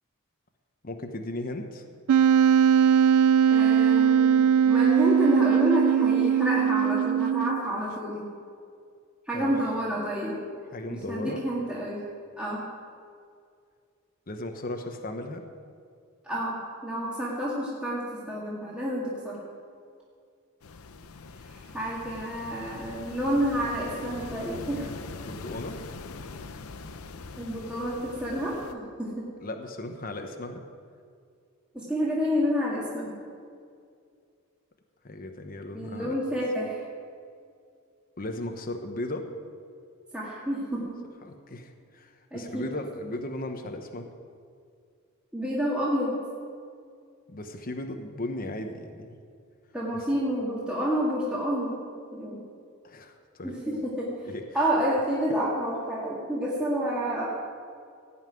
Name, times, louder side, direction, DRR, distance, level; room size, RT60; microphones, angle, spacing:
voice 1, 0.8-1.8 9.3-9.5 10.7-11.4 14.3-15.4 25.2-25.8 29.4-30.6 35.0-36.2 38.2-39.3 41.2-44.1 47.3-49.2 49.9-50.0 52.8-53.6 54.2-54.4, left 1 dB, 40° left, 5 dB, 1.0 m, -36 dB
Wind instrument woodwind instrument, 2.1-7.8, right 8 dB, 90° right, 0.3 m, -20 dB
voice 2, 3.5-8.3 9.3-10.4 10.9-12.0 12.4-12.7 16.2-19.4 21.5-24.9 27.4-29.3 31.7-33.2 35.7-36.8 40.1-41.0 42.3-42.7 45.3-46.2 49.7-51.8 52.1-52.4 53.4-54.2 54.5-57.2, equal, 5° right, -7 dB, 2.0 m, -29 dB
sound 1, 20.6-28.7, left 4 dB, 85° left, 0.7 m, -42 dB
17.0 x 5.7 x 9.2 m, 2.3 s
head